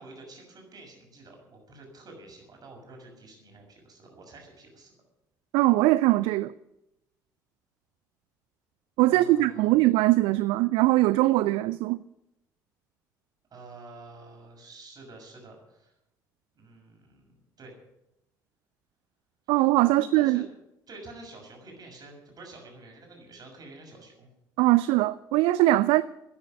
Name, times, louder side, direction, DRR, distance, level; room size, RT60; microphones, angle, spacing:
voice 1, 0.0-4.9 9.1-9.8 13.5-15.9 16.5-17.8 19.4-20.5 20.9-24.3, right 2 dB, 40° right, 6.4 m, -48 dB
voice 2, 5.5-6.5 9.0-12.0 19.5-20.4 24.6-26.0, right 17 dB, 60° right, 0.5 m, -21 dB
13.0 x 10.0 x 9.6 m
figure-of-eight pair, 55°, 10 cm